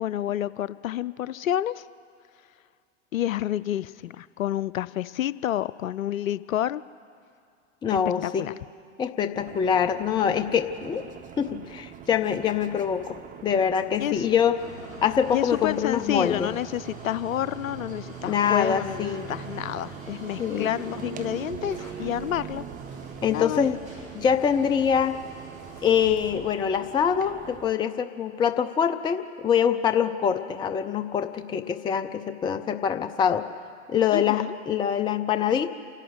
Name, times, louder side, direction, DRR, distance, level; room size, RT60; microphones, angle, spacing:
voice 1, 0.0-1.9 3.1-6.8 8.2-8.5 14.0-14.3 15.3-22.7 23.3-23.6 34.1-34.6, left 12 dB, 85° left, 17 dB, 0.5 m, -29 dB
voice 2, 7.8-8.5 9.0-11.0 11.4-13.2 13.4-14.6 15.0-16.5 18.3-19.3 20.4-20.7 23.2-23.8 24.1-25.2 25.8-33.4 33.9-35.7, left 8 dB, 10° left, 10 dB, 0.5 m, -24 dB
sound 1, 9.3-27.7, right 9 dB, 20° right, 0.8 m, -42 dB
sound 2, 14.6-26.4, left 1 dB, 90° right, 4.8 m, -46 dB
28.5 x 11.5 x 7.9 m, 2.3 s
hypercardioid pair, 105°, 40 cm